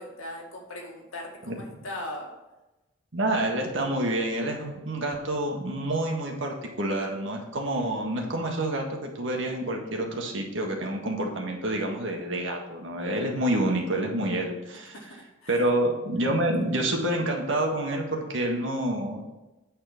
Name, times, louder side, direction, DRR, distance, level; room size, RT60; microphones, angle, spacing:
voice 1, 0.0-2.3 14.9-15.6, left 1 dB, 90° left, -1 dB, 2.1 m, -39 dB
voice 2, 3.1-14.9 15.5-19.3, right 1 dB, 60° right, 1 dB, 1.6 m, -28 dB
8.9 x 4.4 x 5.8 m, 1.0 s
head